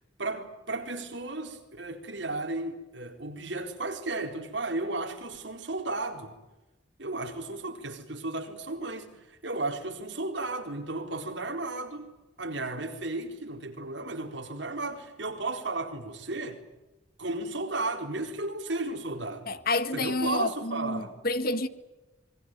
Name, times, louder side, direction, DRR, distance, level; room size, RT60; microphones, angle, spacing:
voice 1, 0.2-6.4 7.0-12.1 12.4-16.6 17.2-19.5 19.9-21.1, right 2 dB, 70° right, 4.2 m, -34 dB
voice 2, 19.5-21.7, left 2 dB, 55° left, 1.7 m, -29 dB
26.0 x 22.0 x 9.2 m
head